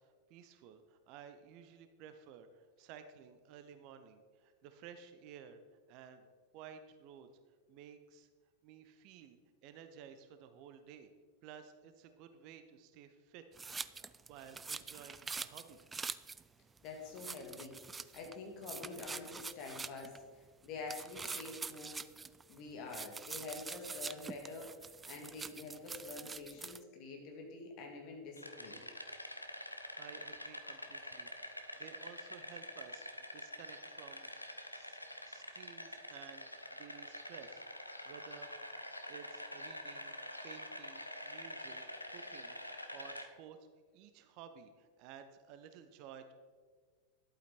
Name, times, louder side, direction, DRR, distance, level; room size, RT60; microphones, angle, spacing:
voice 1, 0.0-5.6 5.9-7.3 7.7-8.3 8.6-11.1 11.4-15.8 30.0-33.1 33.3-35.0 35.2-36.4 36.7-37.6 38.0-38.5 39.0-40.2 40.4-41.8 42.1-43.6 43.9-46.3, right 8 dB, 40° right, 9 dB, 0.8 m, -55 dB
sound 1, 13.6-16.4 16.8-16.9 17.2-18.4 18.6-20.2 20.9-22.6 22.9-26.8, right 4 dB, 15° right, 0.3 m, -45 dB
voice 2, 16.8-20.2 20.6-22.0 22.5-24.7 25.1-28.8, left 3 dB, 40° left, 1 dB, 2.4 m, -47 dB
sound 2, 28.4-43.3, left 1 dB, 85° left, 0.8 m, -47 dB
11.5 x 8.4 x 4.3 m, 1.5 s
figure-of-eight pair, 90°, 0 cm